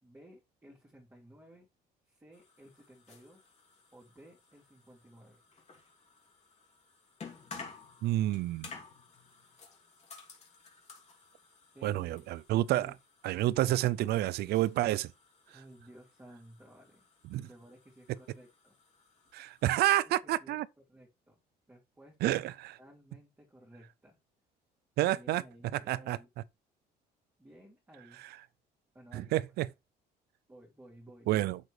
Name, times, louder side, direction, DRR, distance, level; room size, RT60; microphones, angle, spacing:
voice 1, 0.0-1.7 2.1-3.5 3.9-5.4 11.7-12.3 12.7-12.9 15.5-17.0 17.4-18.8 19.7-20.6 20.9-21.4 21.7-22.4 22.8-24.2 25.1-26.3 27.4-28.2 28.9-29.4 30.5-31.6, right 1 dB, 15° right, 3.3 m, -56 dB
sound 1, 2.3-20.0, left 4 dB, 40° left, 2.8 m, -54 dB
voice 2, 8.0-8.7 11.8-12.9 13.2-15.1 17.3-17.5 19.3-20.7 22.2-22.7 25.0-25.4 25.7-26.2 29.1-29.7 31.3-31.6, right 15 dB, 70° right, 0.5 m, -29 dB
7.9 x 7.2 x 3.3 m
cardioid pair, 110°, 17 cm